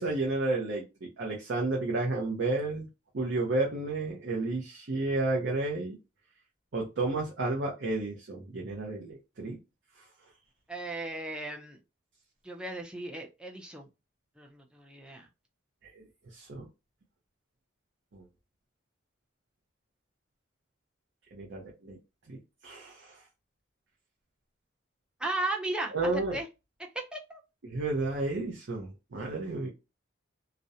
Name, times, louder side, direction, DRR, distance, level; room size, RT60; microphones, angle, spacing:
voice 1, 0.0-2.9 3.1-6.0 6.7-9.6 16.4-16.6 18.1-18.2 21.3-22.0 22.3-22.4 22.6-23.1 25.9-26.4 27.6-29.7, right 2 dB, 60° right, -1 dB, 0.5 m, -31 dB
voice 2, 10.7-11.8 12.4-13.9 14.4-15.3 25.2-26.5 27.1-27.4, right 2 dB, 5° right, 0 dB, 0.4 m, -36 dB
2.4 x 2.0 x 2.7 m, 0.27 s
head